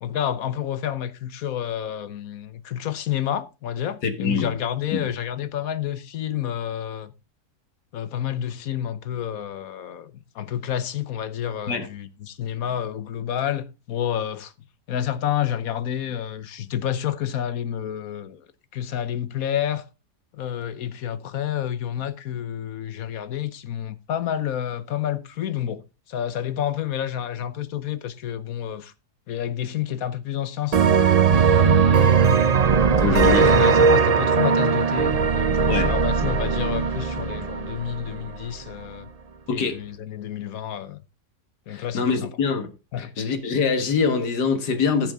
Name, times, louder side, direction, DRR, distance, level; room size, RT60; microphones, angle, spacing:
voice 1, 0.0-7.1 7.9-14.5 14.9-18.4 18.7-19.9 20.3-25.8 26.1-28.9 29.3-30.9 31.2-32.5 33.1-39.1 39.5-41.0 41.7-42.3 42.9-43.1, left 10 dB, 65° left, 1.3 m, -29 dB
voice 2, 4.0-4.5 4.9-5.1 11.7-11.9 33.0-33.5 35.7-35.9 39.5-39.8 41.7-42.7 43.0-45.1, left 5 dB, 80° left, 2.1 m, -24 dB
sound 1, 30.7-38.3, right 6 dB, 80° right, 0.3 m, -19 dB
15.0 x 6.3 x 3.6 m
omnidirectional pair, 1.7 m